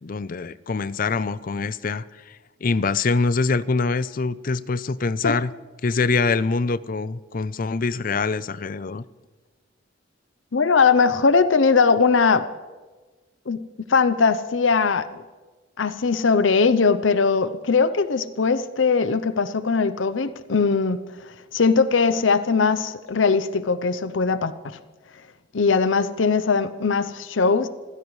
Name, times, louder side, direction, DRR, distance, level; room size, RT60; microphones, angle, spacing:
voice 1, 0.0-2.4 2.6-5.5 5.8-9.0, left 4 dB, 45° left, 0.5 m, -24 dB
voice 2, 10.5-12.5 13.5-15.2 15.8-21.0 21.5-24.8 25.5-27.7, left 5 dB, 85° left, 0.7 m, -20 dB
27.0 x 16.0 x 3.2 m
head